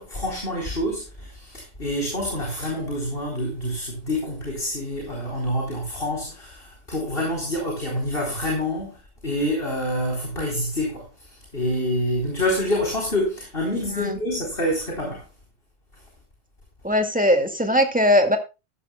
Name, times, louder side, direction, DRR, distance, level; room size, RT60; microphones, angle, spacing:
voice 1, 0.0-11.3 11.5-15.3, left 1 dB, 55° left, 4.2 m, -27 dB
voice 2, 16.8-18.4, equal, 5° right, 2.2 m, -20 dB
14.0 x 14.0 x 2.3 m
omnidirectional pair, 1.1 m